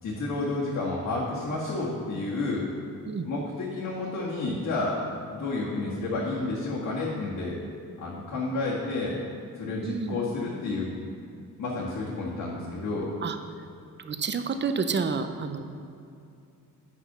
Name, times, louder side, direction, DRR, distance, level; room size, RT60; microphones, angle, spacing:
voice 1, 0.0-2.6 3.2-7.6 8.0-9.2 9.6-10.9 11.6-13.1, left 2 dB, 65° left, -6 dB, 1.8 m, -30 dB
voice 2, 9.8-10.2 13.2-13.4 14.0-15.6, right 5 dB, 35° right, 8 dB, 0.7 m, -29 dB
8.1 x 5.9 x 6.1 m, 2.6 s
cardioid pair, 95°, 34 cm